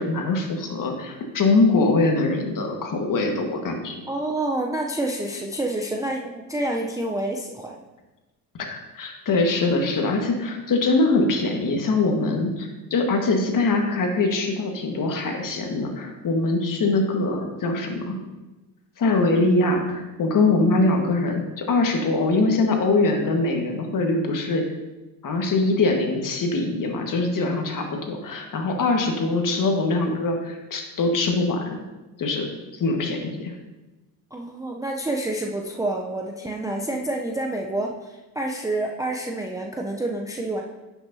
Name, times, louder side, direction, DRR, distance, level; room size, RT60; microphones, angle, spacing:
voice 1, 0.0-3.9 8.6-18.2 19.0-24.6 25.2-31.8 32.2-32.5 32.7-33.5, left 3 dB, 40° left, 3 dB, 1.6 m, -23 dB
voice 2, 4.1-7.8 34.3-40.6, right 1 dB, 5° right, 0 dB, 0.6 m, -28 dB
10.0 x 6.3 x 2.8 m, 1.1 s
hypercardioid pair, 75°, 50 cm